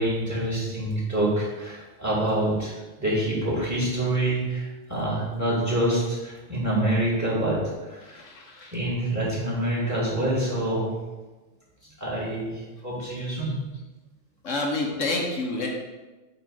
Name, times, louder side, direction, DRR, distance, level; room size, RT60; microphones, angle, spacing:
voice 1, 0.0-8.2 8.7-10.9 12.0-13.6, right 1 dB, 15° right, -6 dB, 2.2 m, -26 dB
voice 2, 8.0-8.7 14.4-15.7, left 2 dB, 75° left, 0 dB, 1.3 m, -29 dB
8.1 x 3.1 x 4.7 m, 1.2 s
omnidirectional pair, 1.3 m